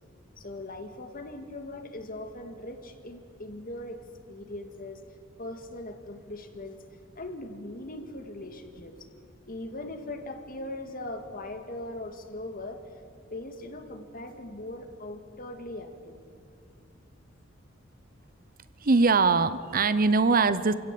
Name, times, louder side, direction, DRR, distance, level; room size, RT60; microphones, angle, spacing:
voice 1, 0.4-4.0 4.3-5.0 5.4-6.8 7.2-9.1 9.5-13.0 13.3-16.2, left 1 dB, 45° left, 6 dB, 2.0 m, -40 dB
voice 2, 18.8-20.7, right 4 dB, 45° right, 14 dB, 0.8 m, -22 dB
28.0 x 16.5 x 7.6 m, 2.4 s
head